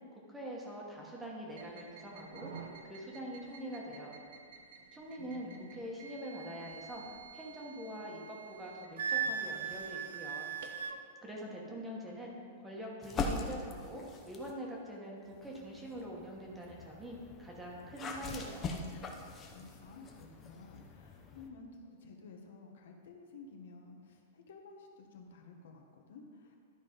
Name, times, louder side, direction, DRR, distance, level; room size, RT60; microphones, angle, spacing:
voice 1, 0.3-2.5 2.8-4.2 4.9-7.0 7.3-10.5 11.2-12.4 12.6-18.7, equal, 5° right, -3 dB, 1.2 m, -44 dB
sound 1, 1.5-10.8, right 5 dB, 70° right, 0.9 m, -53 dB
voice 2, 5.2-5.8 11.4-11.8 19.5-26.6, left 4 dB, 75° left, 2 dB, 1.3 m, -53 dB
Wind instrument woodwind instrument, 9.0-11.0, right 7 dB, 90° right, 0.6 m, -36 dB
sound 2, 13.0-14.6 15.3-21.5, left 3 dB, 20° left, 0.7 m, -42 dB
12.0 x 4.5 x 5.2 m, 2.1 s
supercardioid pair, 165°, 0 cm